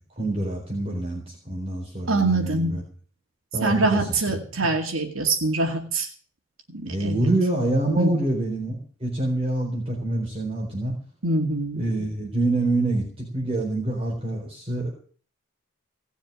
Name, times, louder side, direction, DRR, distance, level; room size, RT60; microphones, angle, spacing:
voice 1, 0.2-2.8 3.5-4.1 6.8-10.9 11.7-14.9, right 2 dB, 25° right, -2 dB, 4.0 m, -26 dB
voice 2, 2.1-2.8 3.6-6.1 6.7-7.3 8.0-8.2 11.2-11.8, right 2 dB, 65° right, 4 dB, 2.2 m, -24 dB
18.0 x 7.2 x 8.8 m, 0.42 s
head